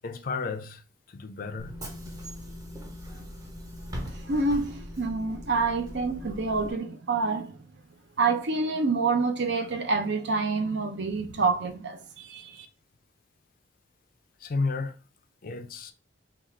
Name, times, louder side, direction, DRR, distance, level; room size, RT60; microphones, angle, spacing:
voice 1, 0.0-0.8 1.1-1.8 14.4-14.9 15.4-15.9, left 4 dB, 45° left, 0.5 m, -32 dB
Bus / Engine, 1.6-6.7, equal, 20° right, 0.7 m, -40 dB
voice 2, 4.1-7.6 8.2-12.7, right 3 dB, 60° right, 0.7 m, -27 dB
3.7 x 2.4 x 4.3 m
head